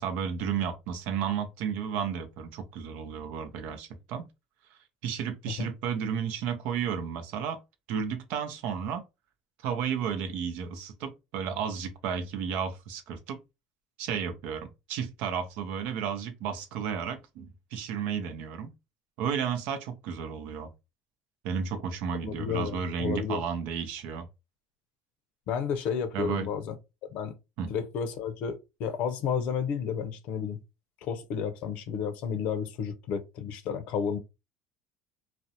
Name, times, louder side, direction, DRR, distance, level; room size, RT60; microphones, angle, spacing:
voice 1, 0.0-4.3 4.7-7.6 7.9-9.0 9.6-13.4 14.0-18.7 19.2-20.7 21.4-24.3 26.1-26.5 27.6-27.7, right 7 dB, 70° right, 0.6 m, -33 dB
voice 2, 22.2-23.4 25.5-26.7 27.1-27.3 27.7-30.6 31.0-34.2, left 7 dB, 65° left, 0.5 m, -31 dB
2.5 x 2.0 x 2.7 m
supercardioid pair, 95°, 3 cm